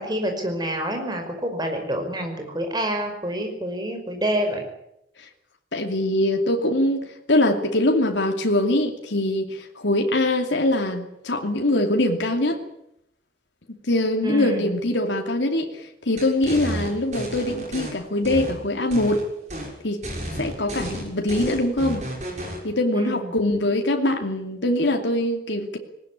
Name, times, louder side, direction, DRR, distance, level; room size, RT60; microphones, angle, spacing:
voice 1, 0.0-4.6 14.2-14.7 22.9-23.3, right 1 dB, 25° right, 4 dB, 5.4 m, -27 dB
voice 2, 5.7-12.6 13.7-19.3 19.8-20.0 20.3-22.0 22.6-25.8, left 1 dB, 90° left, 3 dB, 2.7 m, -23 dB
sound 1, 16.2-17.9 18.2-19.2 19.5-19.7 20.0-22.6, equal, 40° right, 6.6 m, -32 dB
19.5 x 19.0 x 9.8 m, 0.79 s
head